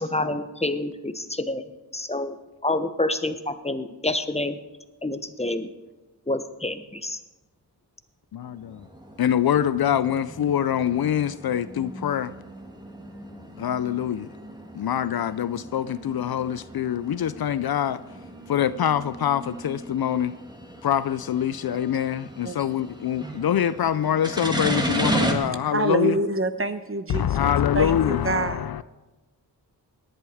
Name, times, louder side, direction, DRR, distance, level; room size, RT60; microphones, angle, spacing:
voice 1, 0.0-1.6 1.9-4.6 5.0-5.7 6.3-7.2, left 2 dB, 15° left, 1.0 m, -28 dB
voice 2, 8.3-8.8 9.2-12.3 13.6-14.3 14.8-18.0 18.5-20.4 20.8-26.2 27.1-28.8, left 9 dB, 65° left, 0.6 m, -24 dB
sound 1, 8.5-25.3, right 1 dB, 10° right, 2.2 m, -35 dB
voice 3, 25.2-28.7, right 3 dB, 30° right, 1.1 m, -27 dB
18.5 x 10.5 x 4.9 m
cardioid pair, 50°, 40 cm